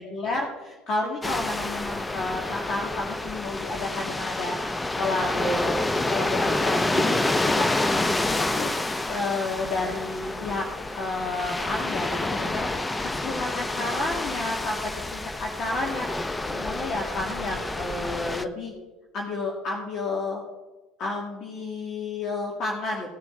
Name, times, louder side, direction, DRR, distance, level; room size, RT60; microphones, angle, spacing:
voice 1, 0.0-5.8 6.1-10.7 11.0-16.1 16.5-18.7 19.1-20.4 21.0-23.1, left 3 dB, 50° left, -1 dB, 2.0 m, -31 dB
sound 1, 1.2-18.4, left 2 dB, 15° left, 0.7 m, -28 dB
17.5 x 7.1 x 3.8 m, 1.2 s
hypercardioid pair, 65°, 0 cm